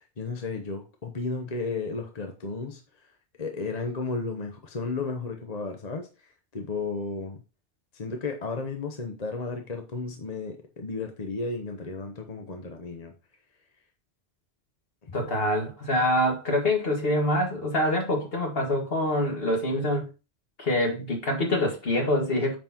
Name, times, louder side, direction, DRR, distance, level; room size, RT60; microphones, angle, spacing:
voice 1, 0.0-2.8 3.4-6.1 6.5-7.4 7.9-13.1 15.0-15.2, left 4 dB, 40° left, 1.0 m, -33 dB
voice 2, 15.1-20.1 20.6-22.6, left 1 dB, 55° left, 2.0 m, -25 dB
8.8 x 5.9 x 2.9 m
omnidirectional pair, 1.2 m